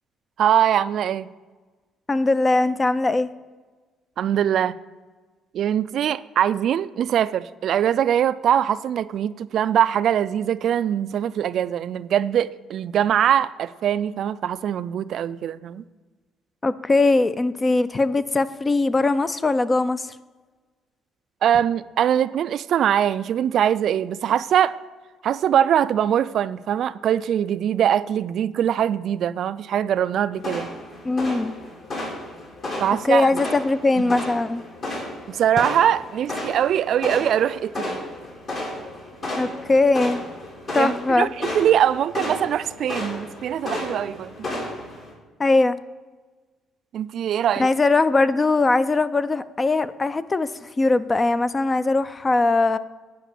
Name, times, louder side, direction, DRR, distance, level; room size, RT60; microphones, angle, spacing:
voice 1, 0.4-1.3 4.2-4.8 5.5-15.8 21.4-24.8 25.2-30.7 32.8-33.3 34.0-34.2 35.3-38.0 40.8-44.3 46.9-47.7, right 10 dB, 60° right, 0.3 m, -22 dB
voice 2, 2.1-3.3 16.6-20.1 31.0-31.5 33.0-34.6 39.4-40.2 40.7-41.3 45.4-45.8 47.6-52.8, left 3 dB, 25° left, 0.4 m, -20 dB
sound 1, 30.4-45.1, left 1 dB, 50° left, 3.4 m, -33 dB
10.0 x 5.0 x 6.9 m
cardioid pair, 110°, 0 cm